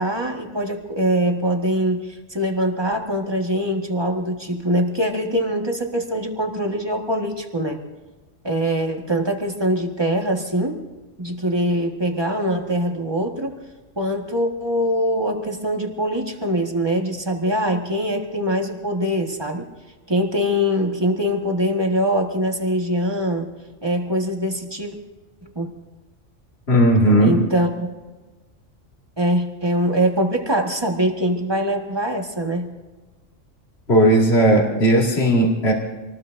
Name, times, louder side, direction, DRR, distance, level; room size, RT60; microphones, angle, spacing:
voice 1, 0.0-7.8 8.4-10.8 11.2-13.6 14.0-19.7 20.1-23.5 23.8-24.9 25.4-25.7 27.2-28.0 29.2-32.7, equal, 20° right, 2 dB, 1.6 m, -23 dB
voice 2, 26.7-27.4 33.9-35.7, right 1 dB, 55° left, -2 dB, 2.6 m, -16 dB
26.5 x 20.0 x 2.7 m, 1.2 s
omnidirectional pair, 1.3 m